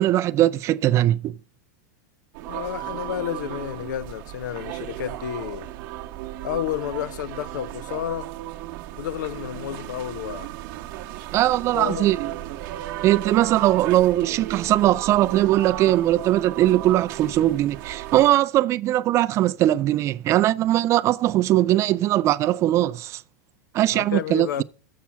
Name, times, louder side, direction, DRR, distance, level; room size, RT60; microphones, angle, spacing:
voice 1, 0.0-1.3 11.3-12.2 13.0-23.2 23.7-24.6, right 14 dB, 30° right, 0.4 m, -20 dB
sound 1, 2.3-18.3, right 14 dB, 45° right, 0.9 m, -35 dB
voice 2, 2.4-5.7 6.4-8.3 8.9-10.5 11.7-12.1 23.9-24.6, left 11 dB, 80° left, 0.5 m, -31 dB
7.3 x 5.7 x 5.7 m
supercardioid pair, 140°, 10 cm